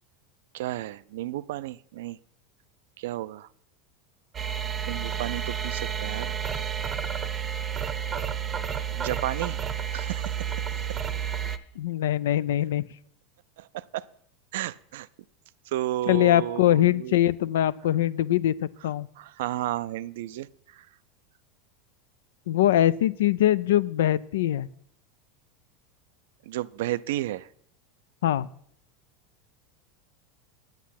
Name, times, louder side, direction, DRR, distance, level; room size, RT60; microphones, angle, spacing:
voice 1, 0.5-2.2 3.0-3.5 4.9-6.3 8.9-9.6 9.9-10.3 13.6-14.1 14.5-15.1 15.7-17.2 19.2-20.9 26.5-27.5, right 14 dB, 75° right, 18 dB, 0.3 m, -32 dB
sound 1, 4.3-11.6, right 8 dB, 25° right, 0.7 m, -31 dB
voice 2, 11.8-12.8 16.1-19.1 22.5-24.7 28.2-28.5, left 13 dB, 85° left, 19 dB, 0.3 m, -23 dB
8.4 x 8.2 x 5.8 m, 0.65 s
supercardioid pair, 120°, 0 cm